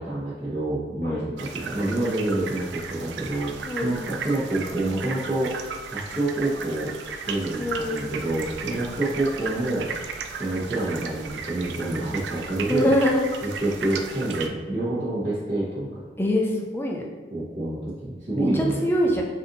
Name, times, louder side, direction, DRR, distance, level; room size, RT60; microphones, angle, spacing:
voice 1, 0.0-3.5 3.8-5.5 5.9-6.9 7.3-9.9 10.4-12.9 13.4-16.0 17.3-18.9, right 2 dB, 40° right, -13 dB, 1.1 m, -27 dB
sound 1, 1.4-14.5, right 5 dB, 80° right, 0.3 m, -35 dB
voice 2, 3.7-4.0 7.6-8.1 12.7-13.2 16.2-17.0 18.4-19.2, left 1 dB, 10° left, -1 dB, 0.4 m, -24 dB
4.2 x 2.7 x 2.7 m, 1.4 s
head